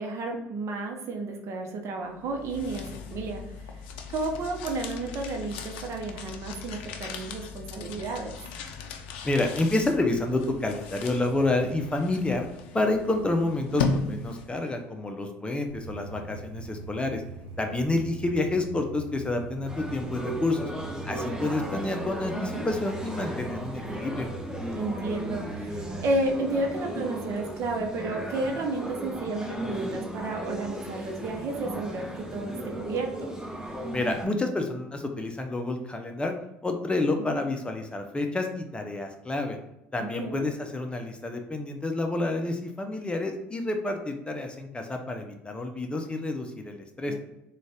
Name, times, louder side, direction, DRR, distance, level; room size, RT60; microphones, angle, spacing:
voice 1, 0.0-3.4 4.1-8.4 22.5-22.7 24.7-33.3 37.2-37.4 40.0-40.5 47.1-47.2, right 2 dB, 60° right, 2 dB, 0.8 m, -32 dB
sound 1, 2.2-14.7, left 4 dB, 85° left, 0.4 m, -37 dB
voice 2, 9.2-12.5 12.7-17.2 17.6-20.7 21.0-24.3 33.9-36.3 36.6-39.6 39.9-47.1, left 2 dB, 20° left, 4 dB, 0.7 m, -29 dB
sound 2, 15.7-26.2, right 3 dB, 85° right, 1.0 m, -42 dB
sound 3, 19.7-34.3, right 1 dB, 10° right, 1.2 m, -36 dB
3.8 x 2.4 x 3.5 m, 0.85 s
hypercardioid pair, 70°, 6 cm